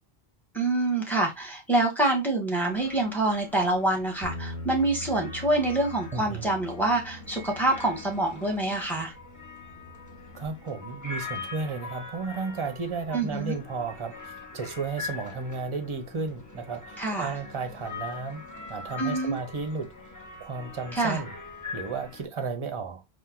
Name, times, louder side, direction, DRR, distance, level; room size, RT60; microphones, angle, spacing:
voice 1, 0.5-9.1 13.1-13.6 17.0-17.4 19.0-19.4 20.9-21.2, right 2 dB, ahead, 1.3 m, -26 dB
sound 1, 2.6-22.2, left 4 dB, 20° left, 0.8 m, -43 dB
Bass guitar, 4.2-10.5, left 1 dB, 45° left, 1.3 m, -43 dB
voice 2, 6.1-6.4 10.3-18.4 18.7-19.9 20.4-21.3 21.7-23.0, right 4 dB, 35° right, 0.7 m, -33 dB
4.3 x 2.6 x 3.7 m
omnidirectional pair, 1.1 m